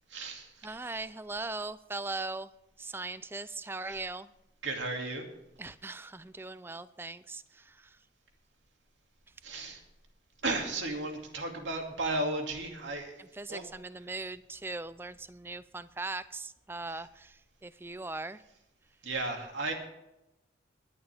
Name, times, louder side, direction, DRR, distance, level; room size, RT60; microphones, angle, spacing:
voice 1, 0.1-0.7 3.9-4.0 4.6-5.3 9.4-9.8 10.4-13.2 13.5-13.6 19.0-19.7, right 2 dB, 70° right, 3 dB, 2.4 m, -34 dB
voice 2, 0.6-2.5 2.8-4.3 5.6-8.1 9.3-9.4 13.2-18.4, right 3 dB, 10° right, 15 dB, 0.4 m, -40 dB
19.5 x 11.0 x 3.5 m, 0.90 s
head